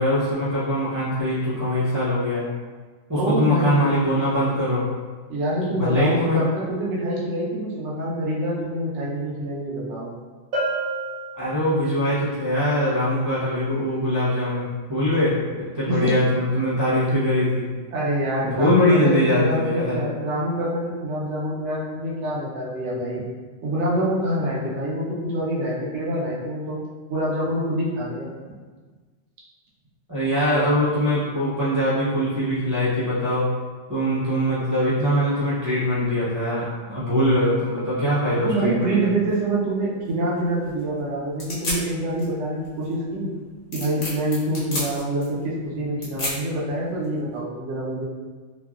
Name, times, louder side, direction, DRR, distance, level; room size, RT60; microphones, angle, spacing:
voice 1, 0.0-2.5 3.1-4.8 5.8-6.4 11.4-17.6 18.4-20.0 30.1-33.5 33.9-38.9, left 1 dB, 30° right, -14 dB, 0.3 m, -22 dB
voice 2, 3.1-3.9 5.3-10.1 15.8-16.1 17.9-23.3 23.6-26.8 27.1-28.3 38.4-43.3 43.7-48.0, right 1 dB, 60° right, -6 dB, 1.0 m, -26 dB
Bell, 10.5-12.1, right 2 dB, 80° right, 1.2 m, -29 dB
sound 1, 39.3-47.4, left 1 dB, 90° left, 1.5 m, -35 dB
3.0 x 2.5 x 2.3 m, 1.4 s
omnidirectional pair, 1.4 m